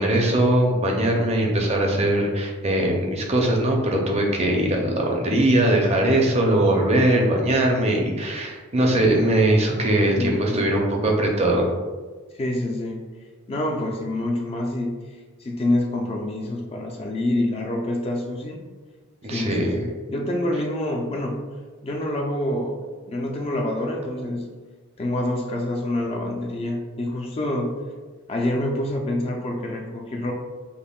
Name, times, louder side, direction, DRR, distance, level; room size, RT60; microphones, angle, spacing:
voice 1, 0.0-11.7 19.2-19.9, right 1 dB, 30° right, 0 dB, 0.5 m, -21 dB
voice 2, 10.1-10.7 12.4-13.1 13.5-15.1 15.4-18.6 19.3-21.4 21.8-22.8 23.1-24.5 25.0-27.7 28.3-30.3, left 1 dB, 25° left, 1 dB, 0.3 m, -26 dB
5.3 x 2.1 x 2.3 m, 1.4 s
head